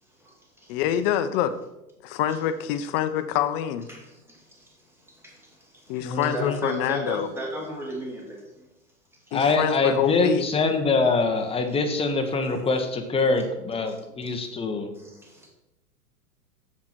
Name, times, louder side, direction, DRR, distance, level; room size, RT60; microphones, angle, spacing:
voice 1, 0.2-0.7 3.9-4.7 5.2-6.0 6.3-8.7 15.0-15.5, right 1 dB, 5° right, -2 dB, 2.6 m, -35 dB
voice 2, 0.7-1.5 2.0-3.9 5.9-7.3 9.3-10.5, left 10 dB, 40° left, 11 dB, 0.8 m, -26 dB
voice 3, 6.0-6.6 9.3-14.9, left 3 dB, 15° left, 5 dB, 1.1 m, -24 dB
7.4 x 7.4 x 4.5 m, 0.91 s
hypercardioid pair, 105°, 45 cm